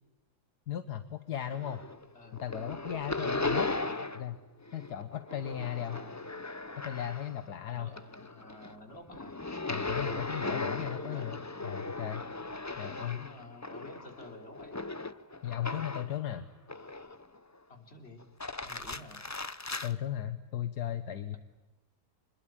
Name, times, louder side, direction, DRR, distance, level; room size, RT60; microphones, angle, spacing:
voice 1, 0.7-1.8 2.3-3.7 4.1-4.4 4.7-6.0 6.8-7.9 9.7-12.2 12.8-13.3 15.4-16.5 19.8-21.4, left 10 dB, 80° left, 10 dB, 1.7 m, -36 dB
sound 1, 1.3-2.1 2.3-4.4 4.6-7.5 7.9-16.2 16.7-17.4 18.2-19.9, left 3 dB, 20° left, 0.4 m, -37 dB
voice 2, 3.2-4.1 5.4-6.2 7.7-9.4 10.6-11.3 12.8-14.8 17.7-18.3 18.6-19.2, left 1 dB, 40° left, 5 dB, 3.7 m, -50 dB
26.5 x 21.5 x 8.8 m, 1.1 s
omnidirectional pair, 1.7 m